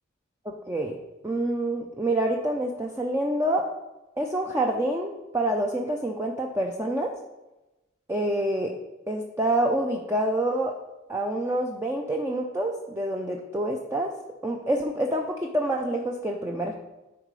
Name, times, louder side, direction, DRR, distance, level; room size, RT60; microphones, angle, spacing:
voice 1, 0.4-1.0 1.2-3.7 4.2-7.1 8.1-8.7 9.1-10.8 11.1-14.1 14.4-16.7, right 1 dB, 15° right, 1 dB, 0.5 m, -27 dB
10.5 x 4.1 x 4.7 m, 1.0 s
head